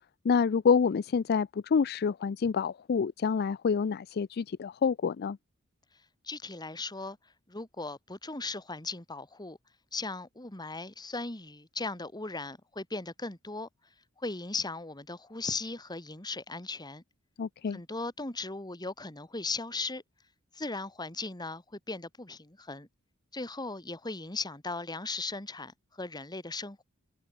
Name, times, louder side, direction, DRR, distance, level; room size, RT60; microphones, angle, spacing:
voice 1, 0.2-5.4 17.4-17.8, left 6 dB, 45° left, 0.4 m, -27 dB
voice 2, 6.2-7.2 7.5-9.6 9.9-13.7 14.2-17.0 17.7-20.0 20.5-22.9 23.3-26.8, left 3 dB, 20° left, 2.4 m, -37 dB
head